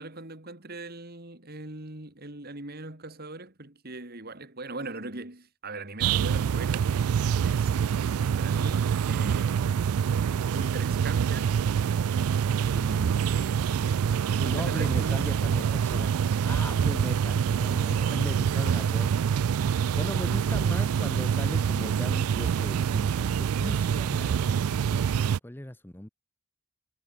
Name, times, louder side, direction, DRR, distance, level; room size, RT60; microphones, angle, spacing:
voice 1, 0.0-7.0 7.4-7.8 8.3-10.0 10.5-11.6 12.6-14.0 14.3-15.3 17.9-19.0, right 2 dB, 45° right, 3.1 m, -41 dB
sound 1, 6.0-25.4, right 7 dB, 90° right, 0.4 m, -26 dB
voice 2, 14.5-16.1 16.4-19.1 20.0-26.1, left 1 dB, 10° left, 0.7 m, -38 dB
head